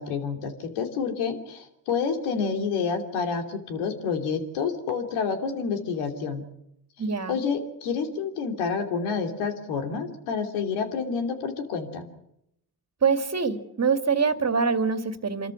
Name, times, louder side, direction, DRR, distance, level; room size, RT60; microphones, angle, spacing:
voice 1, 0.0-6.4 7.3-12.1, left 5 dB, 80° left, 6 dB, 3.1 m, -29 dB
voice 2, 7.0-7.4 13.0-15.5, right 5 dB, 30° right, 9 dB, 2.3 m, -24 dB
26.0 x 13.5 x 9.7 m, 0.80 s
hypercardioid pair, 55°, 49 cm